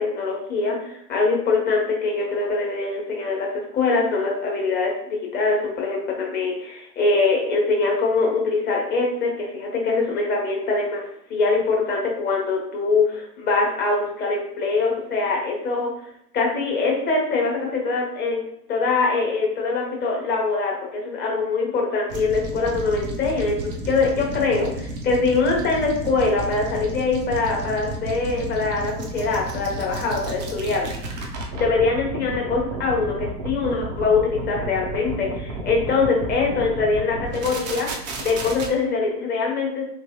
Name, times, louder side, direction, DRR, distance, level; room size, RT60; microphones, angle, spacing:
voice 1, 0.0-3.5 3.7-11.0 11.3-15.9 16.3-23.6 23.9-30.9 31.5-39.9, left 4 dB, 20° left, -1 dB, 0.8 m, -23 dB
sound 1, 22.1-38.7, right 2 dB, 30° right, 0.4 m, -32 dB
3.1 x 3.0 x 2.9 m, 0.73 s
hypercardioid pair, 115°, 49 cm